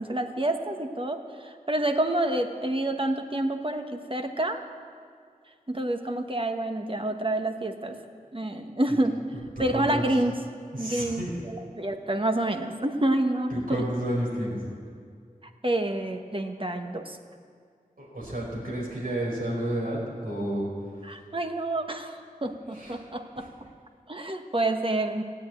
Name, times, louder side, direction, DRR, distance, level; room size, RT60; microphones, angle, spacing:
voice 1, 0.0-4.6 5.7-8.0 8.3-9.2 9.6-10.3 10.8-13.8 15.6-17.2 21.0-23.7 24.1-25.2, right 1 dB, 40° right, 5 dB, 1.2 m, -28 dB
voice 2, 9.6-10.0 10.7-11.3 13.5-14.6 18.0-20.7 22.7-23.0 23.4-23.5, right 1 dB, 85° right, -4 dB, 4.6 m, -31 dB
16.5 x 8.6 x 8.5 m, 2.2 s
wide cardioid pair, 50°, 14 cm